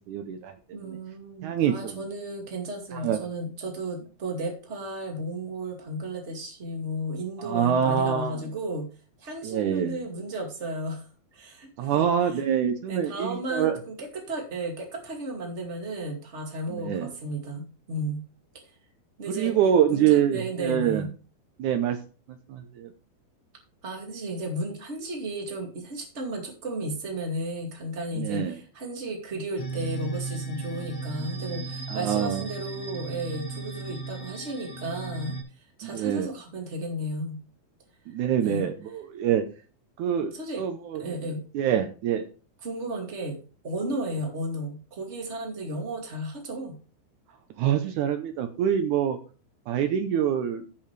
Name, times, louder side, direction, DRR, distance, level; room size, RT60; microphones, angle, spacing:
voice 1, 0.1-0.5 0.8-1.0 1.4-2.1 2.9-3.2 7.4-8.4 9.4-10.0 11.8-13.8 16.7-17.1 19.3-21.1 21.6-22.0 22.5-22.9 28.1-28.6 31.9-32.4 35.8-36.3 38.1-39.4 40.0-41.0 41.5-42.3 47.6-49.2 49.7-50.6, right 9 dB, 90° right, 7 dB, 1.7 m, -25 dB
voice 2, 0.7-8.9 9.2-11.0 11.3-12.0 12.3-12.4 12.9-18.2 19.2-19.5 19.9-21.1 23.8-35.4 35.8-37.4 38.4-38.7 40.3-40.6 41.0-41.4 42.6-43.4 43.6-46.8, right 1 dB, 25° right, 2 dB, 1.7 m, -34 dB
sound 1, 29.6-35.4, right 3 dB, 90° left, 5.0 m, -35 dB
15.5 x 5.8 x 3.3 m, 0.36 s
omnidirectional pair, 4.6 m